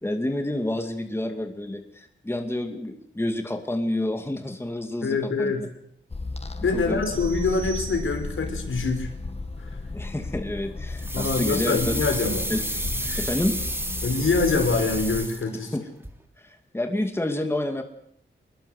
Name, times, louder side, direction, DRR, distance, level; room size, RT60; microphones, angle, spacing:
voice 1, 0.0-5.7 6.7-7.0 9.9-12.0 12.5-12.6 13.0-13.6 15.7-15.8 16.4-17.8, left 1 dB, 10° left, 5 dB, 2.3 m, -29 dB
voice 2, 5.0-5.7 6.6-9.1 9.6-9.8 11.1-12.4 13.1-13.2 14.0-15.7, left 4 dB, 80° left, 5 dB, 5.0 m, -25 dB
sound 1, 6.1-15.3, left 3 dB, 30° left, 1.9 m, -34 dB
sound 2, 7.0-8.6, right 8 dB, 80° right, 6.2 m, -42 dB
sound 3, 11.0-15.8 16.0-16.1, right 1 dB, 10° right, 3.0 m, -31 dB
23.0 x 21.0 x 8.0 m, 0.71 s
wide cardioid pair, 120°, 21 cm